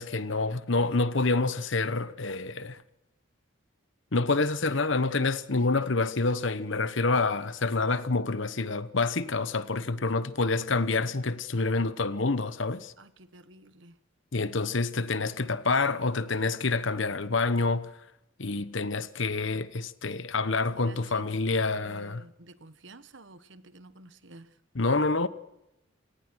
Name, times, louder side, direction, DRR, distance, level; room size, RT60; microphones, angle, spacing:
voice 1, 0.0-2.8 4.1-12.9 14.3-17.9 18.4-22.2 24.7-25.3, left 3 dB, 65° left, 1.1 m, -27 dB
voice 2, 13.0-14.0 20.7-24.5, right 2 dB, 65° right, 1.4 m, -51 dB
26.0 x 18.5 x 6.3 m
head